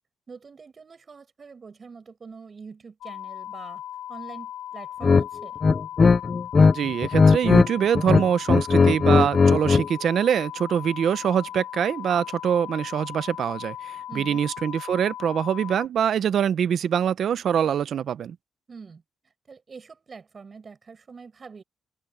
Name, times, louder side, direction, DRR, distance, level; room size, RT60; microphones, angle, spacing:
voice 1, 0.3-3.8 4.1-5.6 14.1-14.5 18.7-19.0 19.5-21.6, right 5 dB, 40° right, 7.3 m, -44 dB
sound 1, 3.0-15.9, left 11 dB, 85° left, 2.9 m, -38 dB
sound 2, 5.0-5.2 5.6-6.7 7.0-7.7 7.9-9.9, left 4 dB, 35° left, 0.4 m, -17 dB
voice 2, 6.7-18.3, right 8 dB, 65° right, 0.7 m, -24 dB
cardioid pair, 100°, 0 cm